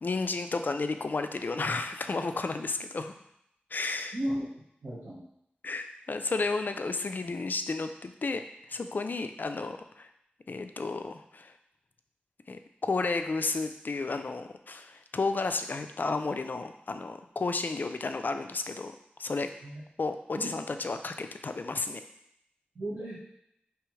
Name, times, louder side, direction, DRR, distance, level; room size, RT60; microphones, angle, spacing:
voice 1, 0.0-3.1 3.7-4.2 5.6-8.4 8.7-10.1 10.5-11.5 12.5-19.5 20.0-22.0, left 3 dB, 55° left, 8 dB, 0.4 m, -32 dB
voice 2, 4.1-4.5 4.8-5.3 19.6-19.8 20.3-20.5 22.7-23.2, right 1 dB, 80° right, -9 dB, 1.5 m, -34 dB
4.7 x 3.4 x 3.1 m, 0.76 s
wide cardioid pair, 55°, 4 cm